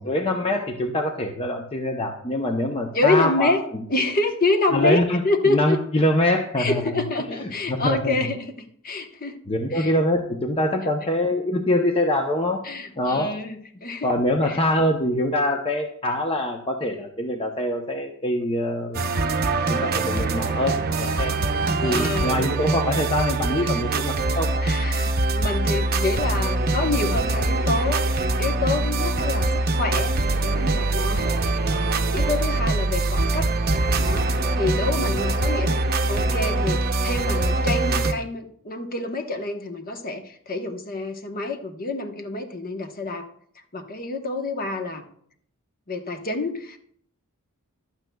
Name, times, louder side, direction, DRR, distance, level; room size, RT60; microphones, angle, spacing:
voice 1, 0.0-3.8 4.7-7.0 7.4-8.2 9.5-12.6 13.0-13.3 14.0-19.3 19.7-21.3 21.8-24.5, left 1 dB, 25° left, 3 dB, 0.8 m, -24 dB
voice 2, 2.9-5.8 6.6-9.4 9.7-9.9 12.6-14.1 14.4-14.6 21.0-21.2 21.8-22.5 23.6-24.0 24.6-33.5 33.9-43.3 43.7-45.0 45.9-46.8, left 2 dB, 40° left, 5 dB, 1.1 m, -27 dB
sound 1, 18.9-38.1, right 2 dB, 45° right, 0.8 m, -23 dB
15.5 x 11.5 x 2.3 m, 0.64 s
head